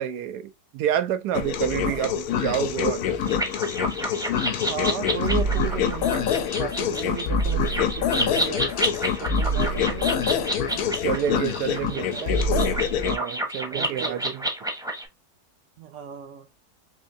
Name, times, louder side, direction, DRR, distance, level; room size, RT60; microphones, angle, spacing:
voice 1, 0.0-3.4 11.0-12.0 13.0-14.4, right 10 dB, 85° right, 1.2 m, -28 dB
sound 1, 1.3-13.2, left 5 dB, 75° left, 1.1 m, -25 dB
sound 2, 3.3-15.0, right 1 dB, 5° right, 0.7 m, -30 dB
voice 2, 4.7-8.7 9.2-10.3 10.7-11.4 11.8-12.6 13.7-14.3 15.8-16.5, right 8 dB, 60° right, 0.9 m, -35 dB
4.3 x 2.7 x 2.5 m
omnidirectional pair, 1.7 m